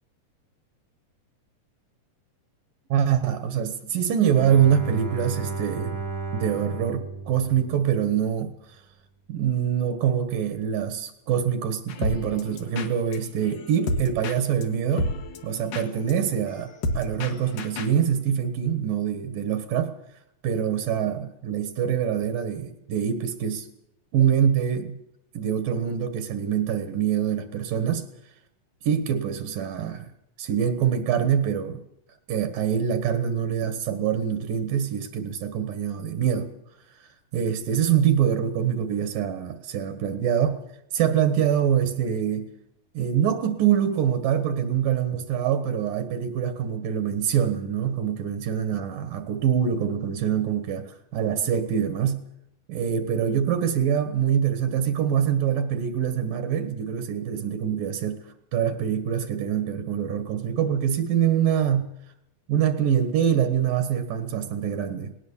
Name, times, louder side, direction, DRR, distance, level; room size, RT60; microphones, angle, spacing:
voice 1, 2.9-6.0 6.3-8.5 9.3-15.1 15.4-19.9 20.4-23.7 24.1-24.9 25.3-28.0 28.8-30.1 30.4-31.8 32.3-36.5 37.3-40.6 40.9-42.5 42.9-52.2 52.7-58.2 58.5-61.8 62.5-65.1, right 8 dB, 80° right, 9 dB, 3.0 m, -24 dB
Bowed string instrument, 4.4-8.3, right 4 dB, 20° right, 1.0 m, -34 dB
sound 1, 11.9-18.0, left 2 dB, 75° left, 3.2 m, -32 dB
19.5 x 19.0 x 7.2 m, 0.79 s
omnidirectional pair, 3.9 m